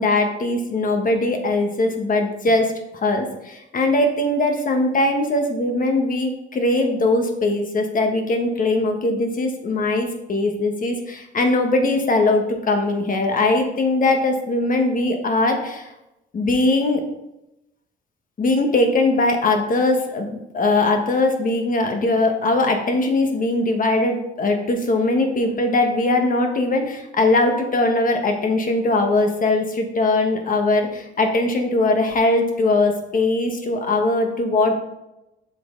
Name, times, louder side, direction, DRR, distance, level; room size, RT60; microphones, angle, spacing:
voice 1, 0.0-15.9 16.3-17.0 18.4-34.7, left 2 dB, 45° left, 4 dB, 1.3 m, -20 dB
7.4 x 5.3 x 3.8 m, 0.91 s
cardioid pair, 90°, 20 cm